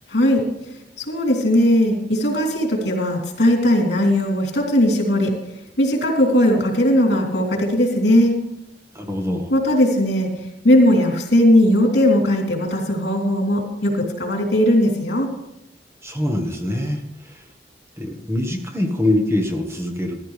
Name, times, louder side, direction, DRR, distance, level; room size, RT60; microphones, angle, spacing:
voice 1, 0.1-0.4 1.0-5.3 5.8-8.3 9.5-10.3 10.6-15.3, left 1 dB, 70° left, 0 dB, 3.2 m, -18 dB
voice 2, 8.9-9.5 16.0-17.4 18.0-20.2, left 1 dB, 15° right, 2 dB, 1.3 m, -24 dB
14.5 x 12.5 x 3.3 m, 0.87 s
head